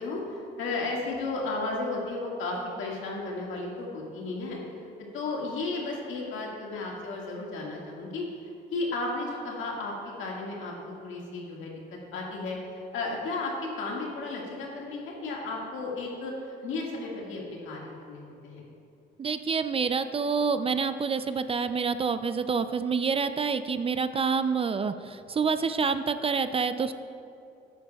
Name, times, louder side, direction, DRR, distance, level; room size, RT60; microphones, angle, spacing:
voice 1, 0.0-4.6 5.1-8.3 8.7-10.7 11.0-18.6, left 3 dB, 85° left, -2 dB, 1.8 m, -34 dB
voice 2, 19.2-26.9, right 5 dB, 30° right, 11 dB, 0.4 m, -27 dB
12.5 x 9.3 x 2.3 m, 2.5 s
cardioid pair, 90°, 20 cm